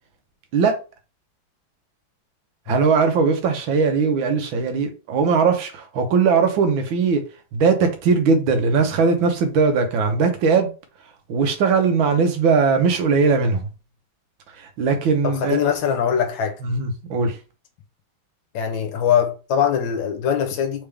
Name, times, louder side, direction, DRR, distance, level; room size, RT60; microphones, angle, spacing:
voice 1, 2.7-7.2 7.5-10.7 11.3-13.7 14.6-15.6 16.6-17.4, right 5 dB, 75° right, 1.6 m, -19 dB
voice 2, 15.2-16.6 18.5-20.9, left 8 dB, 70° left, 1.5 m, -22 dB
4.1 x 3.4 x 3.3 m
omnidirectional pair, 2.2 m